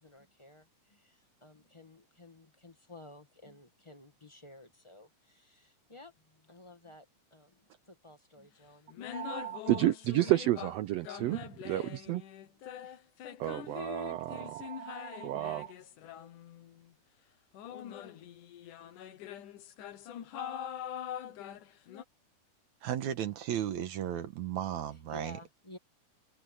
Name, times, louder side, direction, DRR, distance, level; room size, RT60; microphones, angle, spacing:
voice 1, 0.0-9.4 11.7-11.9 12.5-12.9 24.9-25.8, left 2 dB, 15° left, 1.1 m, -54 dB
sound 1, 8.4-8.5 8.9-10.8 11.0-16.9 17.5-22.0, left 9 dB, 85° left, 2.9 m, -44 dB
voice 2, 9.1-11.8 12.1-12.2 13.4-15.7, right 15 dB, 90° right, 1.4 m, -31 dB
voice 3, 22.8-25.4, right 10 dB, 70° right, 2.4 m, -35 dB
omnidirectional pair, 3.6 m